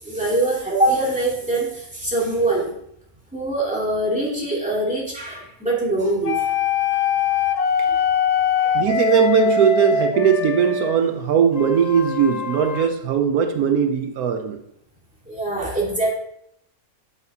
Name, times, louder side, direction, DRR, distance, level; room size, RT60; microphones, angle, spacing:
voice 1, 0.0-2.7 3.3-6.5 8.6-8.7 15.3-16.1, right 2 dB, 5° right, -6 dB, 2.5 m, -23 dB
sound 1, 6.2-10.9 11.5-12.9, left 7 dB, 45° left, 0.5 m, -22 dB
voice 2, 8.7-14.6, right 7 dB, 85° right, 6 dB, 1.2 m, -19 dB
9.0 x 8.1 x 2.8 m, 0.74 s
omnidirectional pair, 1.5 m